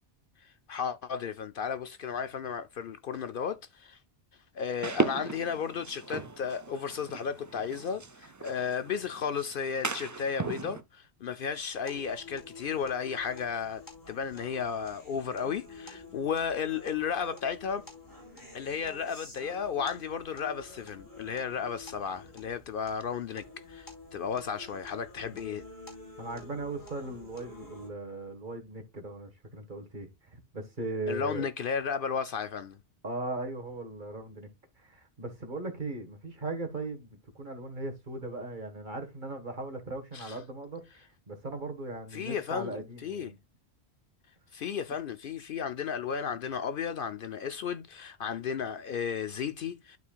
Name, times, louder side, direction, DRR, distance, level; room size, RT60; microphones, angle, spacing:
voice 1, 0.4-4.0 4.5-17.9 18.5-25.6 31.1-32.8 40.1-40.4 42.1-43.3 44.5-50.0, left 7 dB, 60° left, 0.7 m, -34 dB
sound 1, 4.8-10.8, right 4 dB, 30° right, 0.3 m, -36 dB
sound 2, 11.9-27.9, left 2 dB, 15° left, 3.2 m, -49 dB
voice 2, 26.2-31.5 33.0-34.5 34.8-43.4, right 2 dB, 45° right, 1.6 m, -38 dB
12.0 x 4.6 x 2.3 m
omnidirectional pair, 1.1 m